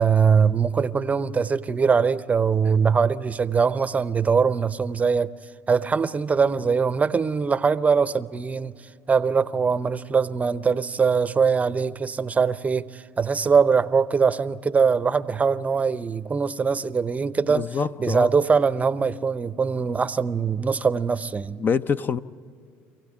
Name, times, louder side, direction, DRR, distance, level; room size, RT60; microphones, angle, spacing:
voice 1, 0.0-5.3 5.7-8.7 9.1-17.7 18.0-21.6, right 5 dB, 25° right, 0.7 m, -22 dB
voice 2, 17.5-18.3 21.6-22.2, left 6 dB, 35° left, 0.7 m, -25 dB
27.0 x 16.5 x 8.7 m
supercardioid pair, 85°, 6 cm